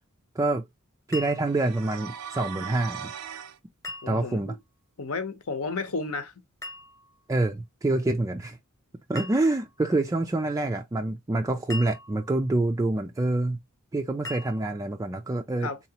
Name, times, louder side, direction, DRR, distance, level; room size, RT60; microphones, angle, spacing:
sound 1, 1.1-1.8 3.8-4.6 6.6-7.3 9.1-9.8 11.7-12.6 14.2-15.0, left 2 dB, 15° left, 0.9 m, -41 dB
voice 1, 1.1-3.1 4.1-4.5 7.3-8.6 9.1-13.6 13.9-15.7, right 2 dB, 15° right, 0.3 m, -26 dB
sound 2, 1.4-3.6, right 8 dB, 85° right, 0.5 m, -39 dB
voice 2, 4.0-4.6 5.0-6.3 15.6-15.8, left 3 dB, 65° left, 0.9 m, -32 dB
3.9 x 2.9 x 2.8 m
head